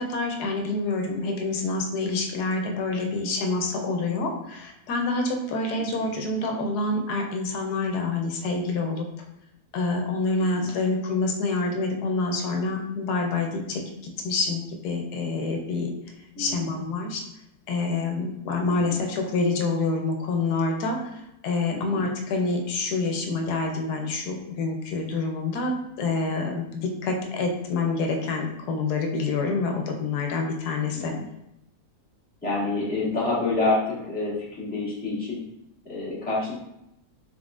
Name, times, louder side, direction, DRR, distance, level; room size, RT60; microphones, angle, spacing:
voice 1, 0.0-9.1 9.7-15.9 16.4-17.2 17.7-21.0 21.4-25.7 26.0-31.1, left 3 dB, 85° left, 2 dB, 1.2 m, -27 dB
voice 2, 16.3-16.8 18.7-19.0 21.7-22.0 30.9-31.2 32.4-35.4 35.9-36.5, left 2 dB, 5° left, -9 dB, 1.4 m, -28 dB
4.1 x 3.7 x 2.4 m, 0.83 s
omnidirectional pair, 1.6 m